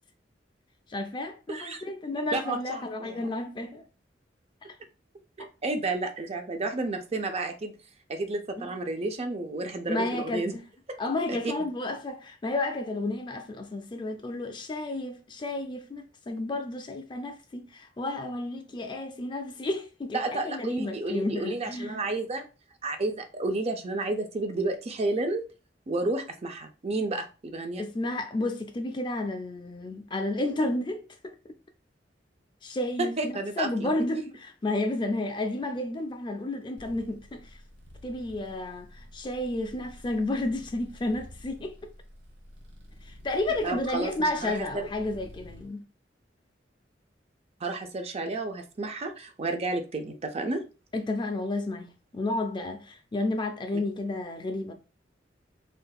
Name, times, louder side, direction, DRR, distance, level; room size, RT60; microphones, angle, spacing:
voice 1, 0.9-3.8 4.6-4.7 8.6-8.7 9.9-10.6 11.0-22.0 27.8-31.4 32.6-37.5 38.0-41.8 43.1-45.8 50.9-51.9 52.1-54.7, left 2 dB, 25° left, 0.4 m, -31 dB
voice 2, 1.5-1.8 2.3-3.3 5.4-7.7 8.1-10.5 11.3-11.5 20.1-22.4 22.8-25.4 25.9-27.8 33.0-33.9 43.6-44.9 47.6-50.6, right 2 dB, 35° right, 0.5 m, -31 dB
sound 1, 36.8-45.7, left 1 dB, 75° right, 0.9 m, -50 dB
3.5 x 2.7 x 2.3 m
head